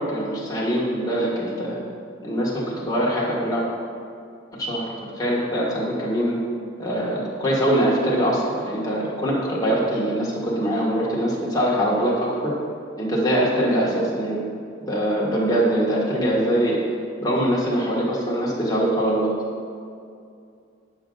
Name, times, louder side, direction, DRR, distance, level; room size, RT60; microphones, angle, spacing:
voice 1, 0.0-1.8 2.2-3.6 4.6-4.9 5.1-6.4 6.8-12.5 13.0-14.4 14.8-16.8 17.2-19.3, right 1 dB, 20° left, -5 dB, 1.5 m, -23 dB
9.6 x 6.3 x 3.9 m, 2.4 s
head